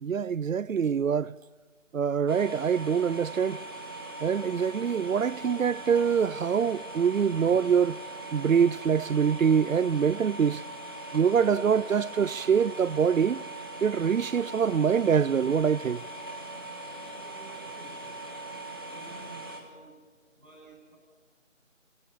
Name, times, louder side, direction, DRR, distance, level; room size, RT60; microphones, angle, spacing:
voice 1, 0.0-1.3 1.9-3.6 4.2-8.0 8.3-10.6 11.1-13.4 13.8-16.0, right 7 dB, 90° right, 0.6 m, -24 dB
sound 1, 2.3-19.6, right 2 dB, 20° right, 1.9 m, -41 dB
voice 2, 17.1-18.3 18.9-20.1 20.3-20.9, right 1 dB, 5° right, 6.4 m, -52 dB
29.0 x 17.0 x 7.0 m
figure-of-eight pair, 180°, 39 cm